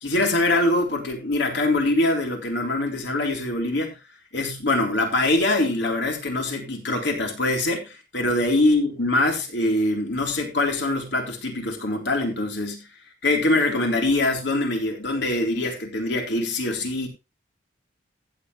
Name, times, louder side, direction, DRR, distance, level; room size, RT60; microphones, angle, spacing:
voice 1, 0.0-4.0 4.3-12.8 13.2-17.1, left 2 dB, 60° left, 3.6 m, -23 dB
15.0 x 7.9 x 3.2 m
head